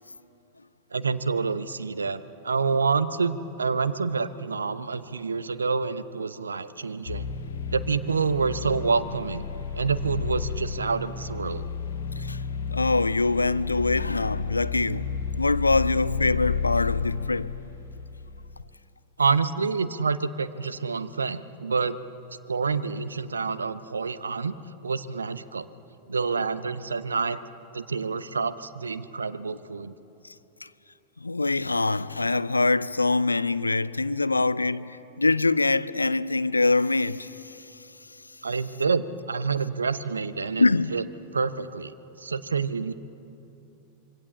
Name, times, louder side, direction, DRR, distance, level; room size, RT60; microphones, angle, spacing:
voice 1, 0.9-7.3 7.7-9.5 9.8-11.6 19.2-22.0 22.5-24.5 24.8-25.7 26.1-27.4 27.7-29.9 38.4-41.0 41.3-42.9, right 5 dB, 75° right, 0.8 m, -27 dB
sound 1, 7.1-18.6, left 6 dB, 65° left, 1.8 m, -32 dB
voice 2, 12.7-15.0 15.4-17.5 30.6-30.7 31.2-37.6 40.6-40.9, left 3 dB, 80° left, 0.5 m, -24 dB
25.5 x 23.0 x 7.0 m
figure-of-eight pair, 90°, 0 cm